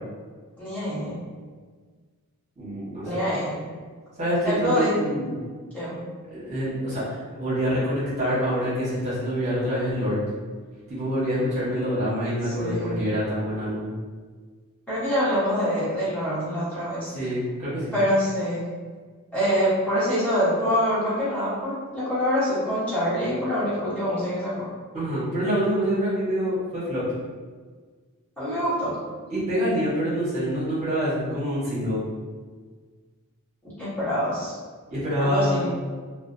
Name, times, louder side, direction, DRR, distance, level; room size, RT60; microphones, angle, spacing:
voice 1, 0.6-1.2 3.0-3.6 4.4-5.0 5.7-6.0 12.4-13.0 14.9-17.1 17.9-18.7 19.3-24.7 28.4-29.0 33.8-34.5 35.2-35.7, equal, 5° left, -13 dB, 0.9 m, -25 dB
voice 2, 2.6-3.1 4.2-5.3 6.3-10.2 10.9-13.9 17.1-17.9 24.9-27.0 29.3-32.0 34.9-35.7, equal, 30° right, -10 dB, 0.9 m, -26 dB
2.5 x 2.2 x 2.5 m, 1.5 s
head